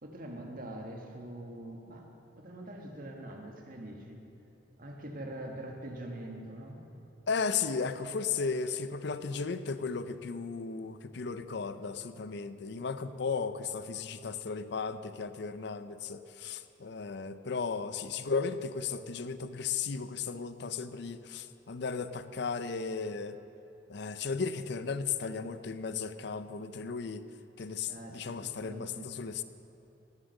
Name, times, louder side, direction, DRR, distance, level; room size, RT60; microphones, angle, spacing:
voice 1, 0.0-2.1 2.4-4.2 4.8-6.8 27.9-29.1, right 1 dB, 50° right, 2 dB, 1.6 m, -43 dB
voice 2, 7.3-23.4 23.9-27.2 27.6-29.4, left 5 dB, 60° left, 12 dB, 0.5 m, -35 dB
18.0 x 7.5 x 6.5 m, 3.0 s
head